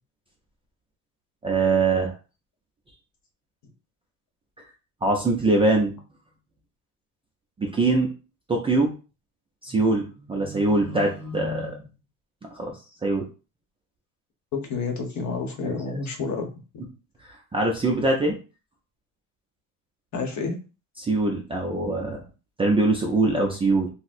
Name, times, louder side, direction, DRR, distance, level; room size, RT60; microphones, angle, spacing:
voice 1, 1.4-2.1 5.0-6.0 7.6-8.1 8.5-8.9 9.6-11.8 12.5-12.7 13.0-13.2 15.6-15.7 17.2-18.3 21.0-22.2 22.6-23.9, right 2 dB, 15° right, -1 dB, 0.3 m, -23 dB
voice 2, 14.5-16.5 20.1-20.6, left 4 dB, 50° left, 3 dB, 1.0 m, -29 dB
4.1 x 2.1 x 2.5 m, 0.33 s
cardioid pair, 145°, 37 cm